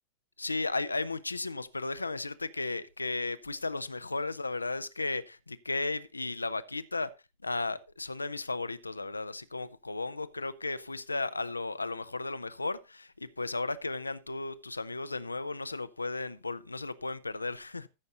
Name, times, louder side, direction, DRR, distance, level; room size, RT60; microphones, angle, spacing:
voice 1, 0.4-7.1 7.4-17.9, left 3 dB, 80° left, 0.7 m, -35 dB
14.0 x 6.6 x 3.9 m
figure-of-eight pair, 90°, 0 cm